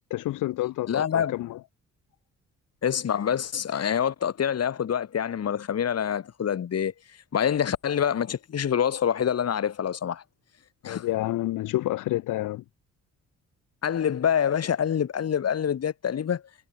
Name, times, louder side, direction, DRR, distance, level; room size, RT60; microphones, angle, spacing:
voice 1, 0.1-1.6 10.8-12.6, left 16 dB, 85° left, 2.2 m, -29 dB
voice 2, 0.9-1.3 2.8-6.9 7.3-10.2 10.8-11.1 13.8-16.4, left 8 dB, 55° left, 4.6 m, -26 dB
cardioid pair, 90°, 30 cm